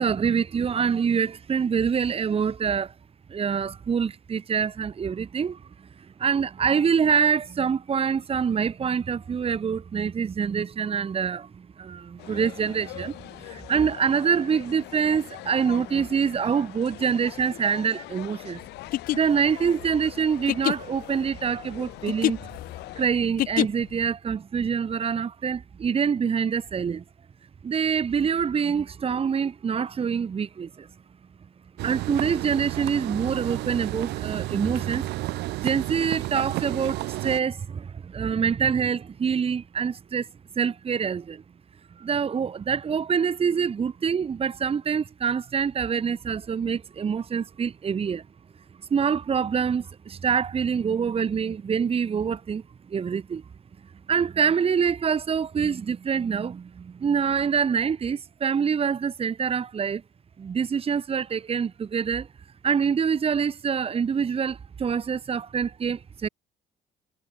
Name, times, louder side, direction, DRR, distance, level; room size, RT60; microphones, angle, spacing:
voice 1, 0.0-2.9 3.3-18.6 19.1-22.5 23.0-27.0 27.6-30.9 31.8-40.3 40.6-41.4 41.9-48.2 48.9-53.4 54.1-60.0 60.4-62.3 62.6-66.3, right 6 dB, 35° right, 2.2 m, -25 dB
sound 1, 12.2-23.1, left 18 dB, 85° left, 1.5 m, -42 dB
sound 2, 18.8-24.0, left 14 dB, 60° left, 0.5 m, -28 dB
sound 3, 31.8-37.4, right 18 dB, 80° right, 0.7 m, -31 dB
cardioid pair, 110°, 17 cm